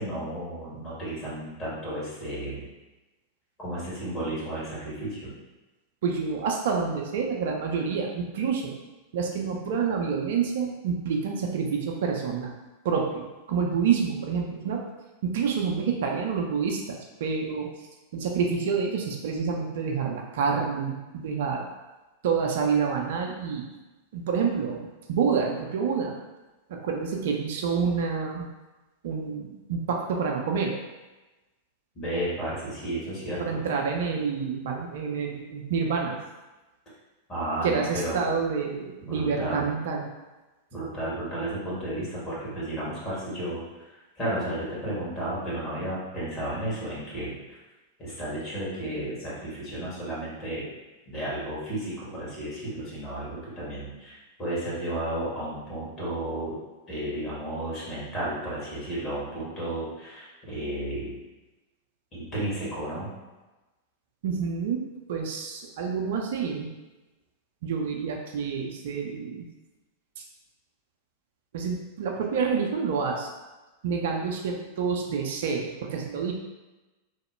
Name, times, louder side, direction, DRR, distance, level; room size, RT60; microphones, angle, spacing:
voice 1, 0.0-2.7 3.6-5.3 31.9-33.6 37.3-38.2 39.0-39.7 40.7-43.6 43.9-47.6 48.0-50.6 51.1-56.6 56.9-61.2 62.1-63.1, right 1 dB, 25° left, -8 dB, 1.5 m, -33 dB
voice 2, 6.0-8.7 9.1-12.5 12.8-14.8 15.2-21.7 22.2-23.7 24.1-26.1 26.7-28.5 29.0-30.7 33.4-36.2 37.6-40.1 64.2-64.8 65.1-66.7 67.6-69.5 70.2-70.3 71.5-73.3 73.8-76.3, right 6 dB, 55° right, 1 dB, 0.3 m, -28 dB
2.9 x 2.1 x 3.2 m, 1.1 s
figure-of-eight pair, 90°, 0 cm